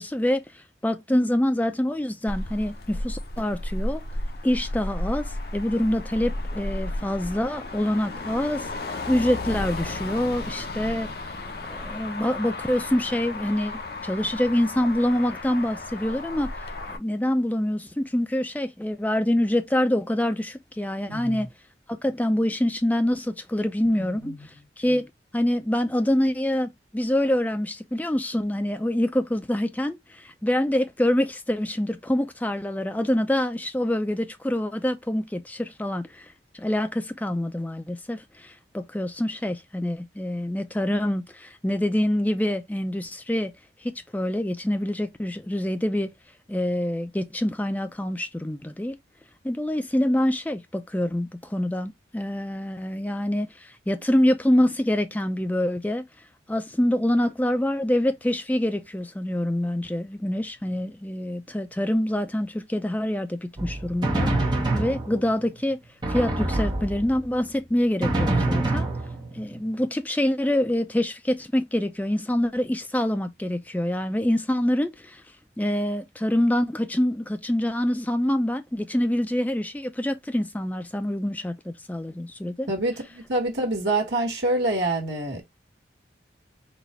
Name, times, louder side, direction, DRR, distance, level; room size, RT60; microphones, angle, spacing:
voice 1, 0.0-4.0 4.4-8.7 9.1-11.1 11.6-16.5 16.9-21.5 21.9-24.3 24.8-25.1 25.3-36.3 36.5-43.5 43.8-46.1 46.5-49.0 49.4-56.1 56.5-64.3 64.7-65.8 66.1-68.9 69.3-75.2 75.6-82.7, left 1 dB, 10° left, 0.4 m, -26 dB
Motor vehicle (road), 2.3-17.0, left 2 dB, 55° left, 0.8 m, -33 dB
voice 2, 21.1-21.5 23.9-24.5 82.7-85.4, right 2 dB, 70° right, 1.4 m, -26 dB
Drum, 63.6-65.5 66.0-67.3 68.0-69.5, right 2 dB, 25° right, 1.0 m, -26 dB
4.1 x 2.4 x 4.3 m
head